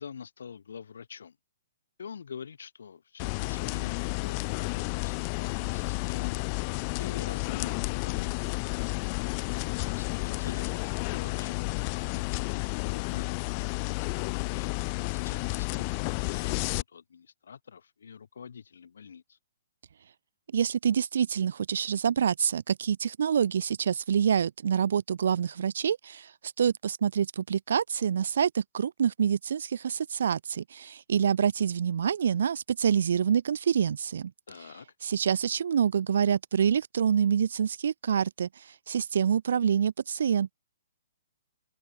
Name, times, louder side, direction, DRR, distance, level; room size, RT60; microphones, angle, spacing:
voice 1, 0.0-1.4 2.0-8.8 9.7-10.7 11.0-13.3 13.6-19.4 34.5-34.9, left 7 dB, 70° left, 6.7 m, -46 dB
sound 1, 3.2-16.8, left 35 dB, 35° left, 0.9 m, -31 dB
voice 2, 20.5-26.3 26.6-34.3 35.0-38.5 38.9-40.5, right 8 dB, 65° right, 0.8 m, -26 dB
figure-of-eight pair, 130°, 0 cm